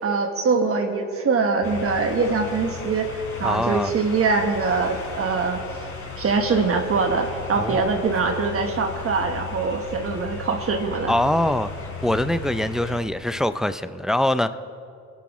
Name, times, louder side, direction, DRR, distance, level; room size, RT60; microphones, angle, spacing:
voice 1, 0.0-5.6 6.2-11.1, right 4 dB, 50° right, 4 dB, 1.2 m, -23 dB
sound 1, 1.6-13.0, left 4 dB, 50° left, 3.5 m, -35 dB
voice 2, 3.4-3.9 7.6-7.8 11.1-11.7 12.0-14.5, left 1 dB, ahead, 11 dB, 0.4 m, -23 dB
23.5 x 11.5 x 3.1 m, 2.5 s
cardioid pair, 90°, 30 cm